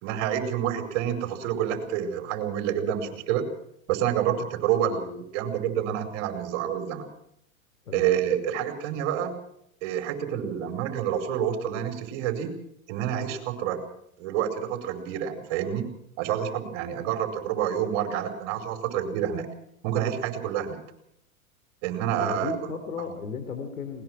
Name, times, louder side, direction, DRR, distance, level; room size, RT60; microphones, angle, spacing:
voice 1, 0.0-3.5 3.9-7.1 7.9-9.4 9.8-12.5 12.9-13.8 14.2-15.9 16.2-19.5 19.8-20.8 21.8-22.5, right 9 dB, 55° right, 7 dB, 5.2 m, -28 dB
voice 2, 22.2-24.0, left 5 dB, 80° left, 6 dB, 3.6 m, -34 dB
20.5 x 20.5 x 6.3 m, 0.74 s
hypercardioid pair, 105°, 42 cm